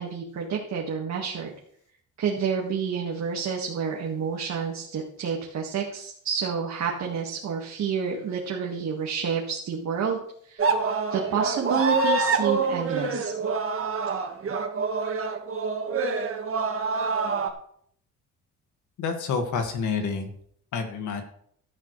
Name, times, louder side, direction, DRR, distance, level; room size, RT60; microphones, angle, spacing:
voice 1, 0.0-1.5 2.2-10.2 10.5-10.7 11.1-13.3, right 6 dB, 65° right, -1 dB, 1.9 m, -29 dB
sound 1, 10.6-17.5, right 4 dB, 45° right, 1.7 m, -26 dB
voice 2, 19.0-20.3 20.7-21.2, left 5 dB, 75° left, 5 dB, 2.1 m, -28 dB
13.0 x 11.5 x 3.3 m, 0.65 s
cardioid pair, 90°, 30 cm